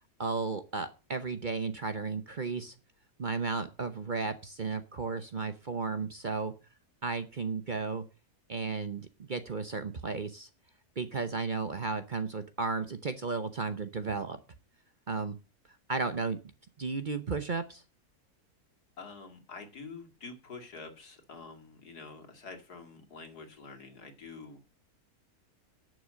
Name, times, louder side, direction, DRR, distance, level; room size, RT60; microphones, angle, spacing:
voice 1, 0.2-2.7 3.2-6.5 7.0-8.0 8.5-10.5 11.0-14.4 15.1-15.4 15.9-16.4 16.8-17.8, right 4 dB, 40° right, 10 dB, 0.8 m, -34 dB
voice 2, 19.0-24.6, left 4 dB, 85° left, 5 dB, 2.8 m, -47 dB
11.5 x 6.4 x 7.5 m, 0.33 s
omnidirectional pair, 1.6 m